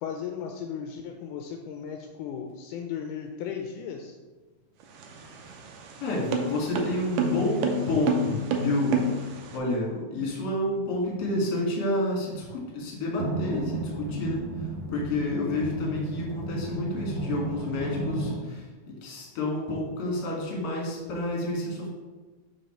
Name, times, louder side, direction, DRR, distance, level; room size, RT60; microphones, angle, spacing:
voice 1, 0.0-4.2, left 7 dB, 85° left, 3 dB, 2.0 m, -36 dB
sound 1, 4.8-9.6, right 2 dB, 75° right, 1.6 m, -29 dB
voice 2, 6.0-18.7 19.0-21.9, left 1 dB, 55° left, -2 dB, 2.4 m, -29 dB
sound 2, 13.2-18.4, right 2 dB, 55° right, 2.7 m, -33 dB
5.7 x 4.9 x 4.2 m, 1.3 s
omnidirectional pair, 3.6 m